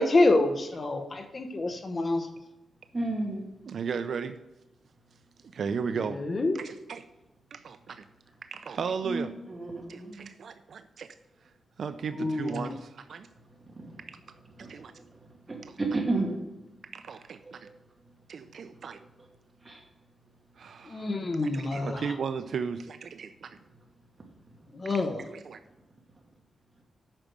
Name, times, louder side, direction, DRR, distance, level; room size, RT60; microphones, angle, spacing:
voice 1, 0.0-2.2 6.1-6.6 12.2-12.7 20.9-22.0 24.7-25.2, left 2 dB, 35° left, 6 dB, 1.1 m, -27 dB
voice 2, 2.9-3.4 9.0-10.3 13.8-14.0 14.6-14.9 15.5-16.4 17.4-17.5 19.6-19.8, right 2 dB, 25° right, 0 dB, 2.3 m, -32 dB
voice 3, 3.6-4.4 5.5-6.2 6.5-7.0 7.5-8.0 8.5-9.3 9.9-11.1 11.8-13.3 14.1-14.2 14.6-14.9 16.9-17.7 18.3-19.0 20.6-21.1 21.4-23.6 24.8-25.6, right 6 dB, 60° right, 10 dB, 0.5 m, -35 dB
8.9 x 6.1 x 6.7 m, 0.95 s
wide cardioid pair, 130°, 0 cm